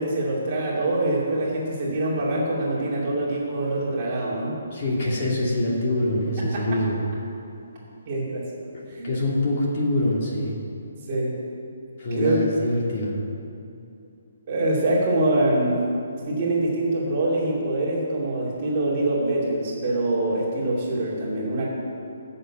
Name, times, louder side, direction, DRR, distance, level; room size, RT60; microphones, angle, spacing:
voice 1, 0.0-4.6 6.4-6.6 8.1-8.4 8.9-9.1 11.1-11.3 12.1-12.4 14.5-15.8 16.3-21.7, right 1 dB, 25° right, -5 dB, 2.6 m, -24 dB
voice 2, 4.7-7.0 9.0-10.5 12.0-13.1, left 1 dB, 30° left, -4 dB, 2.6 m, -24 dB
13.5 x 6.9 x 8.8 m, 2.6 s
hypercardioid pair, 175°, 0 cm